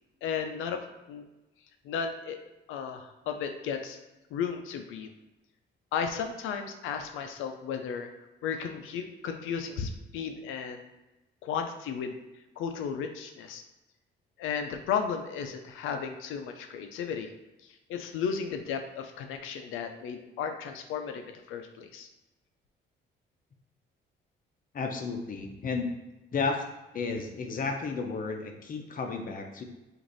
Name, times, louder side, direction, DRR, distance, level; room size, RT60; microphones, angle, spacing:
voice 1, 0.2-0.8 1.1-1.2 1.8-2.4 2.7-4.0 4.3-5.1 5.9-8.1 8.4-10.9 11.4-12.2 12.6-13.6 14.4-17.3 17.9-22.1, left 7 dB, 90° left, 6 dB, 0.5 m, -34 dB
voice 2, 24.7-25.9 26.3-26.6 26.9-29.6, left 4 dB, 45° left, 3 dB, 0.6 m, -32 dB
3.1 x 2.5 x 3.9 m, 1.0 s
cardioid pair, 90°, 20 cm